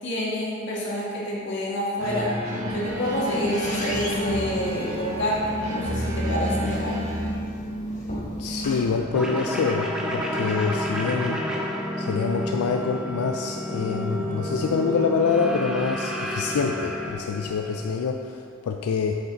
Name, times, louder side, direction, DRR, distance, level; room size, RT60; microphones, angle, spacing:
voice 1, 0.0-2.3 2.7-7.0, equal, 55° left, -6 dB, 1.8 m, -28 dB
sound 1, 2.0-7.3, equal, 80° right, 1.6 m, -30 dB
sound 2, 2.5-9.0, equal, 35° left, 1.2 m, -33 dB
voice 2, 8.4-11.4 12.0-19.2, left 5 dB, 85° left, 3 dB, 0.4 m, -26 dB
sound 3, 9.1-18.1, equal, 5° right, 0.7 m, -30 dB
7.7 x 5.8 x 3.9 m, 2.3 s
head